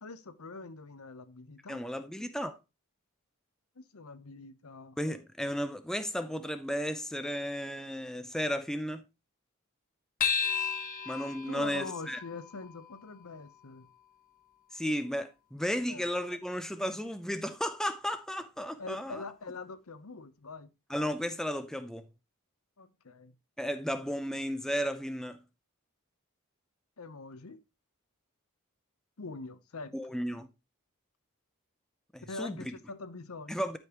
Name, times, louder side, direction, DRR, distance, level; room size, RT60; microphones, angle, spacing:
voice 1, 0.0-1.8 3.8-5.0 11.5-13.9 15.9-16.1 18.8-20.7 22.8-23.3 27.0-27.6 29.2-30.0 32.3-33.6, left 3 dB, 80° left, 0.9 m, -44 dB
voice 2, 1.7-2.6 5.0-9.0 11.1-12.2 14.7-19.2 20.9-22.1 23.6-25.4 29.9-30.5 32.1-32.6 33.5-33.8, equal, ahead, 0.6 m, -34 dB
sound 1, 10.2-15.0, left 6 dB, 40° left, 1.4 m, -36 dB
12.0 x 5.3 x 3.0 m
head